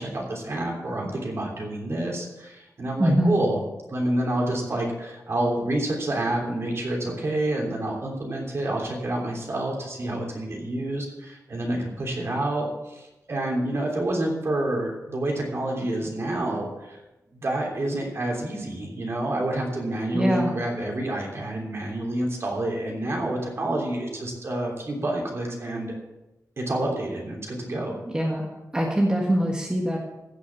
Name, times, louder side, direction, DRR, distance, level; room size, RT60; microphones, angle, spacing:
voice 1, 0.0-3.6 3.9-17.0 17.3-25.9 26.6-28.0, right 1 dB, 45° right, 0 dB, 3.2 m, -28 dB
voice 2, 3.0-3.4 20.1-20.6 28.1-28.5 28.7-30.0, equal, 15° right, -2 dB, 1.6 m, -23 dB
16.0 x 6.3 x 7.1 m, 0.99 s
wide cardioid pair, 175°, 6 cm